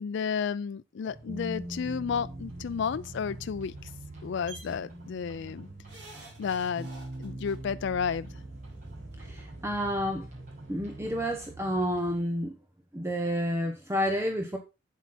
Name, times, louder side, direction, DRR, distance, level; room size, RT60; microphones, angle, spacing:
voice 1, 0.0-3.9 4.2-5.7 6.4-6.9 7.2-8.3, left 6 dB, 65° left, 0.4 m, -32 dB
sound 1, 1.1-12.2, right 1 dB, 40° right, 5.8 m, -43 dB
sound 2, 4.5-4.7 5.9-7.5 8.7-8.8 9.1-9.2, right 3 dB, 60° right, 4.2 m, -48 dB
voice 2, 9.2-10.3 10.7-12.5 12.9-14.6, equal, 15° right, 1.0 m, -30 dB
8.3 x 7.6 x 4.2 m
head